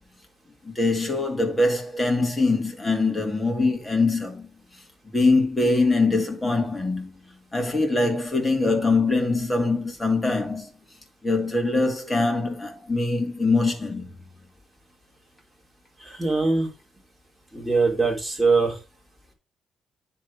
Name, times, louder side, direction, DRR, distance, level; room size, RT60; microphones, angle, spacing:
voice 1, 0.6-4.5 5.1-7.1 7.5-10.7 11.2-14.1, left 3 dB, 15° left, 2.5 m, -23 dB
voice 2, 16.0-16.7 17.5-18.8, right 3 dB, ahead, 3.4 m, -22 dB
10.0 x 3.8 x 4.8 m
cardioid pair, 90°, 0 cm